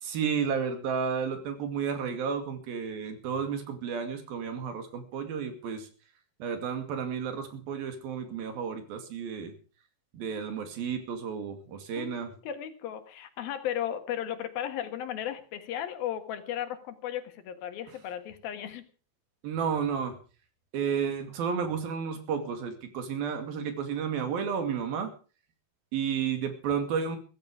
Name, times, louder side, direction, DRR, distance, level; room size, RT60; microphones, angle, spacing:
voice 1, 0.0-5.9 6.4-9.5 10.1-12.3 19.4-20.2 20.7-25.1 25.9-27.2, right 6 dB, 90° right, 7 dB, 4.2 m, -32 dB
voice 2, 12.0-18.8, left 10 dB, 90° left, 9 dB, 3.5 m, -35 dB
16.0 x 14.5 x 4.9 m, 0.37 s
omnidirectional pair, 4.1 m